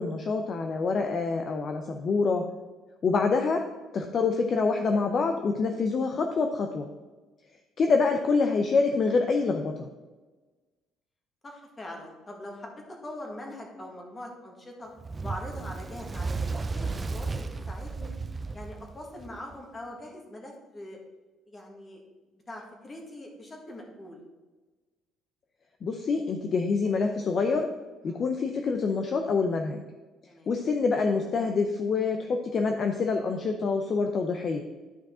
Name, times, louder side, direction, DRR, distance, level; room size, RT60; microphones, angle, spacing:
voice 1, 0.0-2.5 3.0-3.7 3.9-6.9 7.8-9.9 25.8-27.7 28.0-29.8 30.5-34.6, left 4 dB, 35° left, 5 dB, 0.6 m, -26 dB
voice 2, 11.4-14.9 15.2-18.1 18.5-21.0 21.5-22.0 22.5-24.2 28.0-28.2 30.3-30.5, left 1 dB, 20° left, 0 dB, 1.8 m, -42 dB
Fire, 15.0-19.6, right 4 dB, 20° right, 0.4 m, -34 dB
12.0 x 5.1 x 3.7 m, 1.3 s
cardioid pair, 150°, 0 cm